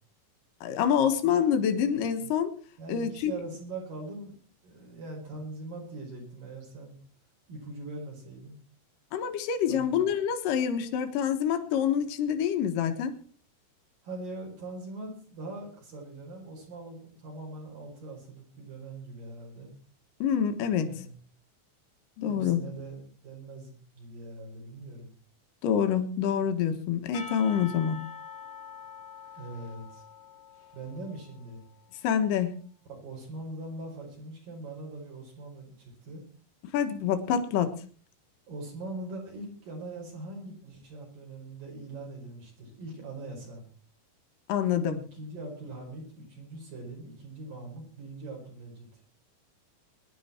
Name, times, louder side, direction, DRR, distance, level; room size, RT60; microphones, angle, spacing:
voice 1, 0.6-2.5 2.9-3.3 9.1-13.2 20.2-20.9 22.2-22.6 25.6-28.0 32.0-32.5 36.7-37.7 44.5-45.0, left 8 dB, 65° left, 7 dB, 2.9 m, -26 dB
voice 2, 2.8-7.0 7.5-8.6 9.7-10.1 14.0-19.7 20.7-21.1 22.3-25.1 29.4-30.0 30.7-31.6 32.9-36.2 38.5-43.6 45.1-48.9, right 2 dB, 60° right, -1 dB, 6.5 m, -42 dB
Percussion / Church bell, 27.1-31.9, left 5 dB, 45° left, 2.0 m, -45 dB
21.0 x 11.0 x 4.4 m, 0.42 s
omnidirectional pair, 4.3 m